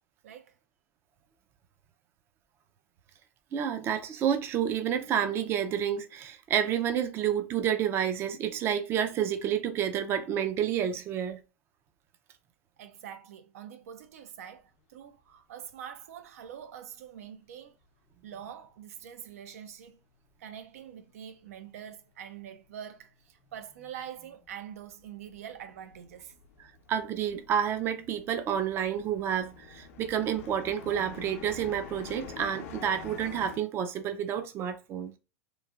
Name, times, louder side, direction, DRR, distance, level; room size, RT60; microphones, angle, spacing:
voice 1, 0.2-0.5 12.8-17.7 18.2-20.0 20.4-26.3, right 9 dB, 80° right, 0.5 m, -45 dB
voice 2, 3.5-11.4 26.9-35.1, right 9 dB, 30° right, 0.4 m, -29 dB
sound 1, 20.7-20.8 21.0-22.2 22.5-33.6, left 6 dB, 70° left, 0.7 m, -48 dB
3.1 x 2.4 x 2.4 m
supercardioid pair, 130°, 8 cm